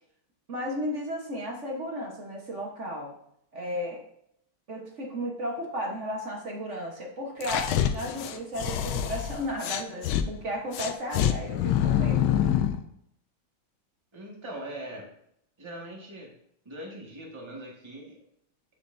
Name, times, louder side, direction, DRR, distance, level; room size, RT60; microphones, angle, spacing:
voice 1, 0.5-3.1 3.5-4.0 4.7-12.3, equal, 45° right, 0 dB, 1.2 m, -34 dB
sound 1, 7.4-10.2 10.7-12.8, left 10 dB, 85° left, 1.4 m, -26 dB
voice 2, 14.1-15.1 15.6-16.3 16.6-18.2, right 1 dB, 15° right, -2 dB, 1.5 m, -41 dB
10.0 x 5.6 x 2.6 m, 0.71 s
omnidirectional pair, 2.2 m